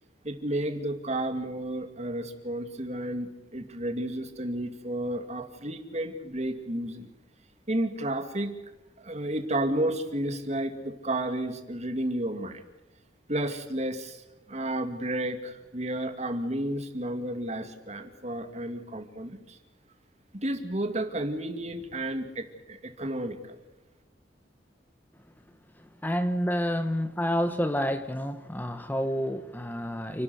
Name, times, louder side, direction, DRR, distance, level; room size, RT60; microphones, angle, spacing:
voice 1, 0.2-7.1 7.7-8.6 9.0-12.6 13.3-14.2 14.5-19.6 20.4-23.6, right 1 dB, 40° right, 7 dB, 2.5 m, -32 dB
voice 2, 25.8-30.2, equal, 10° left, 9 dB, 1.1 m, -29 dB
29.5 x 12.5 x 7.9 m, 1.1 s
head